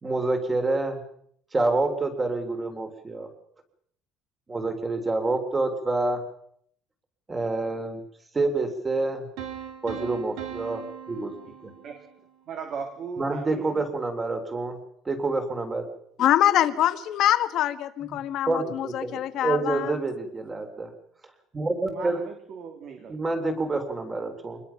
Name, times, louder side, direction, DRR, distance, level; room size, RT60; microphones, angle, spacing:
voice 1, 0.0-1.0 1.5-3.3 4.5-6.2 7.3-8.0 8.3-9.3 9.8-11.3 11.6-11.7 13.2-14.8 15.1-15.8 18.1-18.2 18.5-20.9 21.5-22.2 23.1-24.6, right 2 dB, 15° right, 6 dB, 3.4 m, -27 dB
sound 1, 9.4-12.3, right 9 dB, 85° right, 3.4 m, -39 dB
voice 2, 12.5-13.8 21.9-23.2, right 5 dB, 45° right, 3 dB, 3.1 m, -37 dB
voice 3, 16.2-19.9, left 12 dB, 50° left, 11 dB, 1.5 m, -24 dB
26.0 x 21.0 x 5.9 m, 0.70 s
cardioid pair, 170°, 0 cm